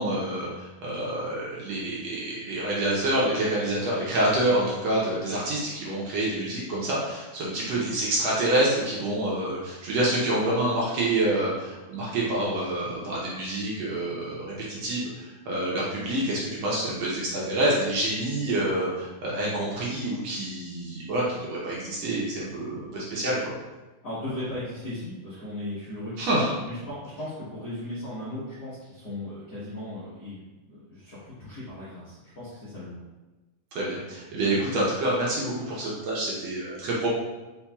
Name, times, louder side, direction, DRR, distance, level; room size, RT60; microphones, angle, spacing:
voice 1, 0.0-23.5 26.2-26.4 33.7-37.1, right 1 dB, 70° right, -6 dB, 1.7 m, -27 dB
voice 2, 24.0-33.0, left 1 dB, 90° left, -11 dB, 0.9 m, -37 dB
4.6 x 4.4 x 2.3 m, 1.2 s
omnidirectional pair, 3.7 m